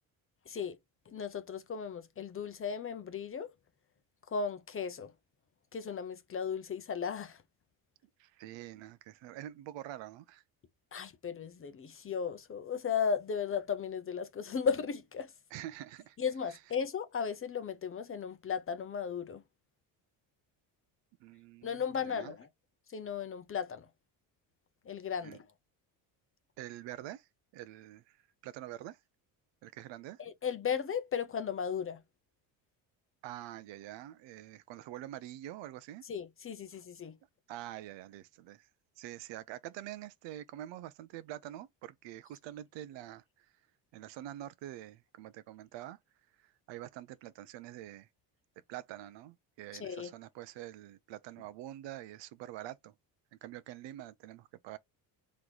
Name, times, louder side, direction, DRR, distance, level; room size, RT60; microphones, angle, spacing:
voice 1, 0.5-0.8 1.1-3.5 4.3-5.1 5.7-7.4 10.9-15.3 16.2-19.4 21.6-22.5 22.9-23.9 24.8-25.5 30.2-32.0 36.1-37.2 49.7-50.1, left 6 dB, 30° left, 0.6 m, -36 dB
voice 2, 8.2-10.4 15.5-16.2 16.5-16.6 21.2-22.3 25.2-25.4 26.6-27.3 27.5-29.0 29.6-30.2 33.2-36.1 37.5-38.7 39.0-43.5 43.9-46.0 46.4-48.1 48.7-52.9 53.3-54.8, right 13 dB, 70° right, 0.7 m, -46 dB
3.3 x 3.1 x 3.9 m
cardioid pair, 95°, 46 cm